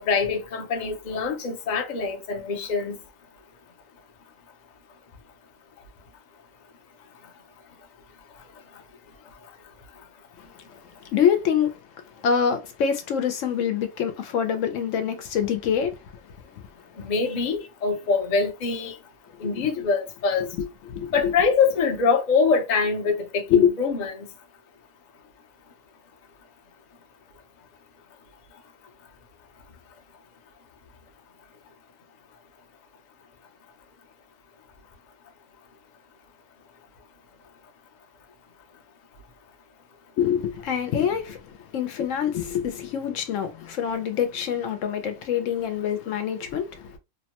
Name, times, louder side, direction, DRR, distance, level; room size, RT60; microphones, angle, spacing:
voice 1, 0.0-3.0 17.0-18.9 19.4-20.5 21.1-24.2, left 5 dB, 45° left, 0.6 m, -24 dB
voice 2, 11.1-11.7 12.2-15.9 19.4-19.5 19.8-19.9 20.4-21.3 23.5-23.7 40.2-47.0, left 8 dB, 80° left, 0.9 m, -25 dB
2.9 x 2.1 x 2.8 m
omnidirectional pair, 1.3 m